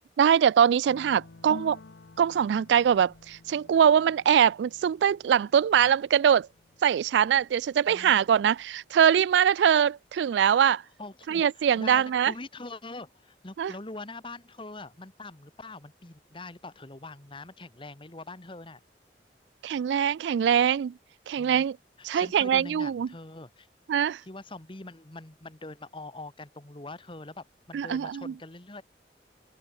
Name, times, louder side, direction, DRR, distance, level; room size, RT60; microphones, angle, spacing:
voice 1, 0.2-1.8 2.2-6.5 6.8-10.8 11.3-12.3 13.6-13.7 19.6-20.9 21.3-21.8 22.0-23.1 23.9-24.2 27.7-28.3, right 8 dB, 80° right, 0.3 m, -23 dB
sound 1, 0.9-9.1, left 3 dB, 85° left, 0.8 m, -51 dB
voice 2, 11.0-18.8 21.4-21.7 22.0-23.7 24.2-28.8, left 2 dB, 30° left, 1.5 m, -43 dB
open air
head